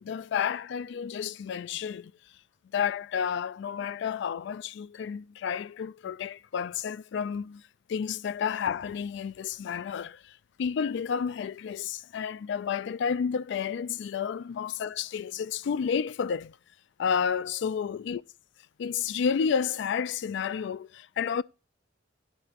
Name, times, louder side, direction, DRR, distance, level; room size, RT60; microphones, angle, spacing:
voice 1, 0.0-2.1 2.7-7.6 7.9-16.6 17.0-18.2 18.8-21.4, left 7 dB, 65° left, 0.3 m, -31 dB
11.0 x 3.9 x 2.8 m
head